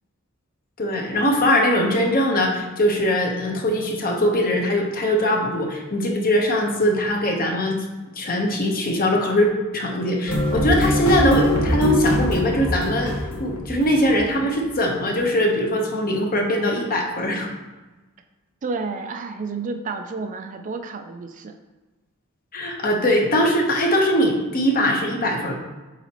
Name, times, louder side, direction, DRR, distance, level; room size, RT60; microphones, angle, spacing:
voice 1, 0.8-7.8 8.1-13.1 13.4-17.5 22.5-25.5, equal, 45° left, 1 dB, 1.0 m, -21 dB
sound 1, 10.3-14.7, left 1 dB, 85° left, 1.3 m, -23 dB
voice 2, 18.6-21.6, right 4 dB, 35° right, 7 dB, 0.4 m, -30 dB
8.0 x 4.1 x 2.9 m, 1.2 s
head